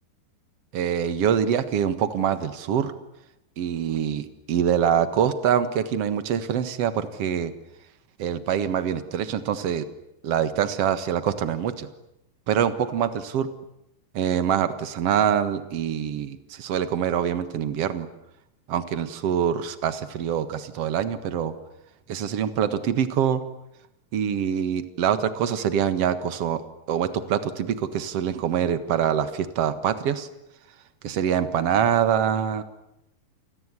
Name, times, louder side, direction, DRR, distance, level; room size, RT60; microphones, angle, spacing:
voice 1, 0.7-2.9 3.6-7.5 8.2-9.9 10.2-11.9 12.5-13.5 14.1-18.1 18.7-21.5 22.1-23.4 24.1-26.6 26.9-30.3 31.0-32.6, right 8 dB, 55° right, 12 dB, 1.8 m, -24 dB
28.5 x 21.0 x 9.8 m, 0.85 s
omnidirectional pair, 4.8 m